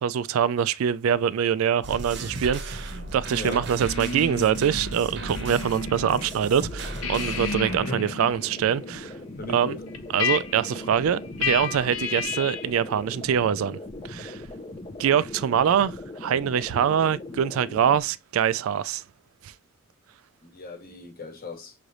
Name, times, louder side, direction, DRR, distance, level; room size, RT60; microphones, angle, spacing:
voice 1, 0.0-9.1 9.5-9.8 10.1-13.8 14.0-14.4 15.0-19.0 19.4-19.5, right 8 dB, 80° right, 0.3 m, -24 dB
sound 1, 1.8-7.8, right 1 dB, 55° right, 0.9 m, -36 dB
voice 2, 3.3-3.6 7.6-8.0 9.4-9.8 20.4-21.7, left 2 dB, 45° left, 1.1 m, -37 dB
sound 2, 3.8-6.3 6.6-12.8, left 5 dB, 85° left, 0.7 m, -33 dB
sound 3, 4.9-18.0, left 2 dB, 25° left, 0.5 m, -40 dB
5.8 x 3.2 x 2.5 m
head